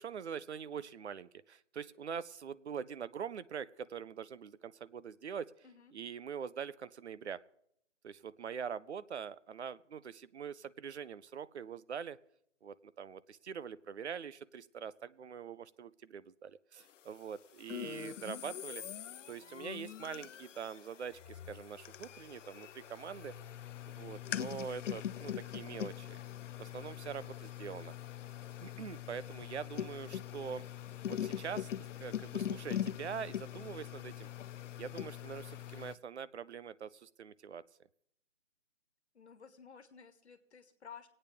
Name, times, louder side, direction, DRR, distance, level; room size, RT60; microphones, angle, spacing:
voice 1, 0.0-5.5 5.9-7.4 8.0-12.2 12.6-18.8 19.3-23.3 23.9-26.2 26.6-27.9 28.6-30.6 31.1-34.3 34.8-37.6, right 7 dB, 65° right, 18 dB, 0.5 m, -44 dB
sound 1, 17.7-35.9, left 10 dB, 90° left, 0.5 m, -42 dB
voice 2, 39.1-41.1, left 7 dB, 65° left, 9 dB, 1.4 m, -54 dB
24.0 x 8.8 x 3.4 m, 0.73 s
hypercardioid pair, 180°, 36 cm